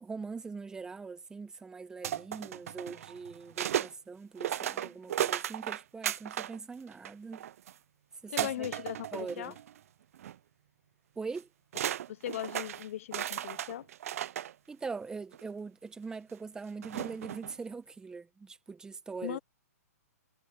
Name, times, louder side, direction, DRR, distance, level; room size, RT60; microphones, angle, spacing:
voice 1, 0.0-7.5 8.2-8.7 9.1-9.6 11.2-11.5 14.7-19.4, right 4 dB, 10° right, 1.2 m, -42 dB
sound 1, 2.0-3.9 4.4-6.6 6.9-7.7 8.4-9.8 10.1-10.3 11.4-11.5 11.7-14.5 15.3-15.4 16.8-17.5, right 11 dB, 60° right, 0.4 m, -35 dB
voice 2, 8.3-9.5 12.1-13.9 19.2-19.4, left 12 dB, 55° left, 0.6 m, -38 dB
hypercardioid pair, 140°, 9 cm